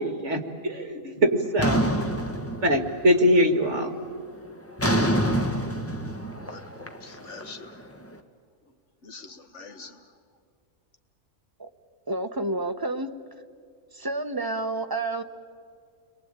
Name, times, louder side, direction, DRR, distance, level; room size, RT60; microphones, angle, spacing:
voice 1, 0.0-1.9 2.6-4.0, equal, 55° right, 7 dB, 2.2 m, -23 dB
sound 1, 1.6-3.1 3.5-3.9 4.8-7.9, equal, 10° left, 1.6 m, -26 dB
voice 2, 6.4-7.7 9.0-9.9, left 4 dB, 55° left, 7 dB, 1.7 m, -44 dB
voice 3, 12.1-13.1 13.9-15.2, right 2 dB, 20° right, 7 dB, 0.9 m, -29 dB
30.0 x 22.5 x 8.9 m, 2.2 s
omnidirectional pair, 1.5 m